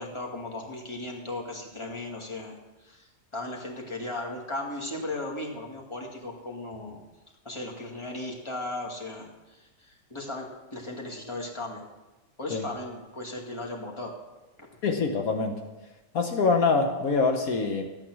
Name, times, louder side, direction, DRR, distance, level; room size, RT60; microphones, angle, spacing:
voice 1, 0.0-2.5 2.8-7.0 7.4-11.8 12.4-14.1 14.6-14.7, left 2 dB, 20° left, -1 dB, 2.1 m, -36 dB
voice 2, 14.8-15.6 16.1-17.8, left 4 dB, 70° left, 4 dB, 1.5 m, -24 dB
13.5 x 9.0 x 6.2 m, 1.1 s
omnidirectional pair, 1.6 m